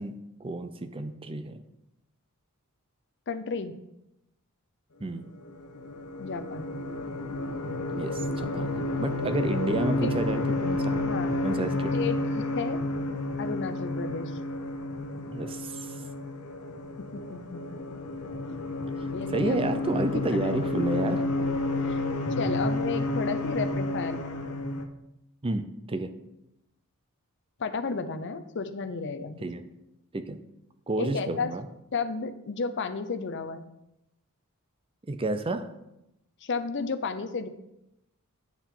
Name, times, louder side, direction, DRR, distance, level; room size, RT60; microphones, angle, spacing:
voice 1, 0.0-1.6 5.0-5.2 7.9-11.0 11.4-11.9 15.3-16.0 19.3-21.2 25.4-26.1 29.4-29.6 30.1-30.4 30.9-31.7 35.1-35.7, right 2 dB, 25° right, 9 dB, 0.5 m, -31 dB
voice 2, 3.3-3.7 6.2-6.7 10.0-10.1 11.1-11.6 11.9-12.8 13.4-14.4 17.0-17.8 19.1-19.7 20.1-20.6 20.9-21.0 21.8-24.6 27.6-29.4 31.0-31.5 31.9-33.6 36.4-37.5, left 4 dB, 55° left, 11 dB, 0.6 m, -33 dB
sound 1, 5.4-24.8, left 2 dB, 90° left, 0.9 m, -30 dB
9.0 x 7.2 x 3.8 m, 0.87 s
head